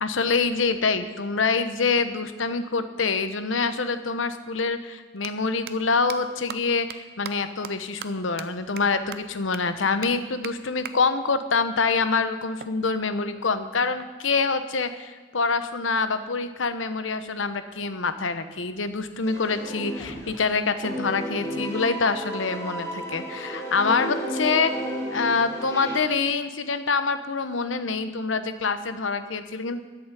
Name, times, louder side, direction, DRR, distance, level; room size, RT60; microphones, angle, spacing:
voice 1, 0.0-24.7 25.1-29.8, left 4 dB, 85° left, 11 dB, 1.0 m, -26 dB
sound 1, 5.2-5.3 5.7-5.8 6.1-6.2 6.5-6.6 6.9-7.0 7.2-7.3 7.6-7.7 8.0-8.1 8.4-8.5 8.8-8.9 9.1-9.2 9.5-9.6 10.0-10.1 10.4-10.5 10.9-11.0 12.6-13.6, right 8 dB, 55° right, 0.7 m, -38 dB
sound 2, 19.2-20.5 20.8-26.0, equal, 15° left, 2.4 m, -33 dB
13.0 x 7.0 x 9.2 m, 1.4 s
head